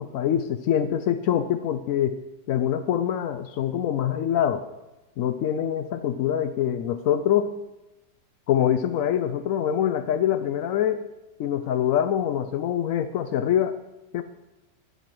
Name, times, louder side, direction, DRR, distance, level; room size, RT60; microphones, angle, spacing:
voice 1, 0.0-4.7 5.2-7.6 8.5-11.1 11.4-13.8 14.1-14.2, left 10 dB, 85° left, 10 dB, 0.7 m, -24 dB
12.5 x 8.0 x 4.5 m, 0.99 s
omnidirectional pair, 2.0 m